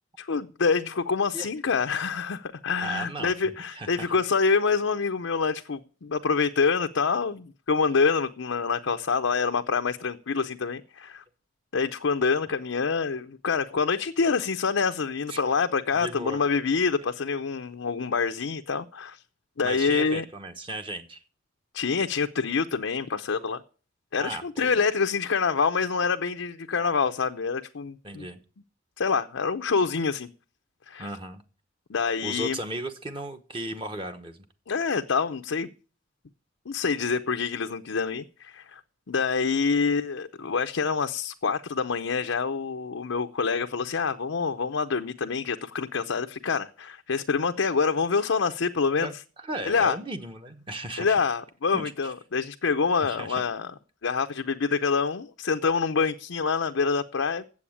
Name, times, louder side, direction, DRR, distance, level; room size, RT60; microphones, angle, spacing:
voice 1, 0.2-11.2 11.7-19.2 19.6-20.2 21.7-23.6 24.1-28.3 29.0-30.3 30.9-31.1 31.9-32.6 34.7-35.7 36.7-38.8 39.1-49.1 49.7-50.0 51.0-53.7 54.0-57.5, left 5 dB, 75° left, 0.6 m, -26 dB
voice 2, 2.8-3.3 3.7-3.9 15.3-15.4 15.9-16.4 19.6-21.2 24.2-24.9 28.0-28.4 31.0-31.4 32.2-34.4 49.0-49.1 49.4-51.2 51.7-51.9 53.0-53.4, right 1 dB, 25° right, 1.0 m, -36 dB
8.5 x 7.8 x 8.6 m
head